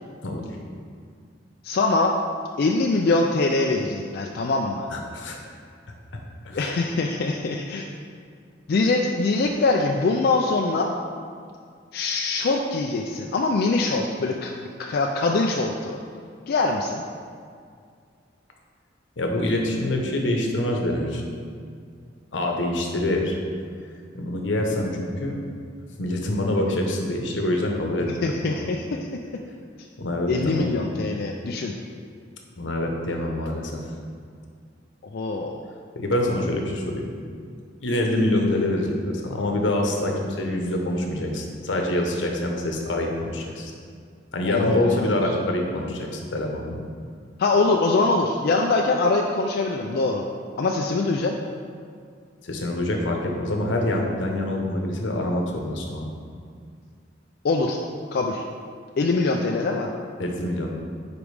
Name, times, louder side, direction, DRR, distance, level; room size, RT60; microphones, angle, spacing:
voice 1, 1.6-2.2 2.6-4.9 6.5-7.9 8.7-10.9 11.9-16.0 16.5-17.0 28.2-28.9 30.3-31.7 35.1-35.6 44.4-45.1 47.4-50.2 50.6-51.3 57.4-57.8 58.1-58.4 59.0-59.9, left 3 dB, 55° left, 1 dB, 0.4 m, -23 dB
voice 2, 4.9-5.4 6.4-6.6 19.2-21.2 22.3-23.4 24.1-25.4 26.0-28.6 30.0-30.7 32.6-33.8 35.9-37.1 37.8-43.7 44.3-46.8 52.4-56.1 60.2-60.8, left 1 dB, 85° left, 1 dB, 0.9 m, -25 dB
5.2 x 4.9 x 4.7 m, 2.2 s
head